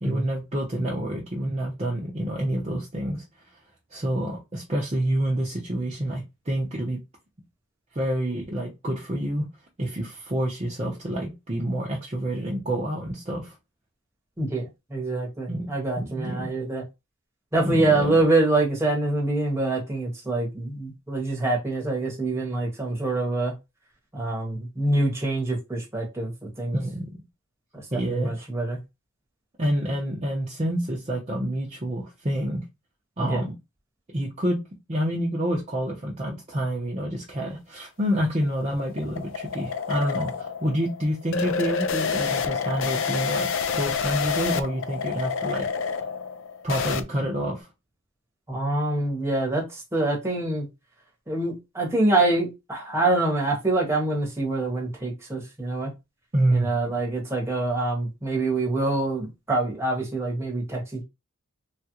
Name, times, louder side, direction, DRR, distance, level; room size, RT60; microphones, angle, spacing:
voice 1, 0.0-3.2 3.9-7.0 7.9-9.5 9.8-13.6 15.5-15.7 16.0-16.5 17.6-18.2 26.7-27.2 27.9-28.5 29.6-32.6 33.2-33.5 34.1-34.6 34.9-45.7 46.6-47.7 56.3-56.7, right 1 dB, 30° right, 0.6 m, -28 dB
voice 2, 14.4-16.8 17.5-23.5 24.1-26.8 27.7-28.8 33.2-33.4 48.5-50.7 51.3-55.9 56.5-61.0, right 2 dB, 10° right, 0.9 m, -25 dB
sound 1, 38.1-47.0, left 6 dB, 55° left, 0.4 m, -28 dB
3.2 x 2.4 x 2.8 m
head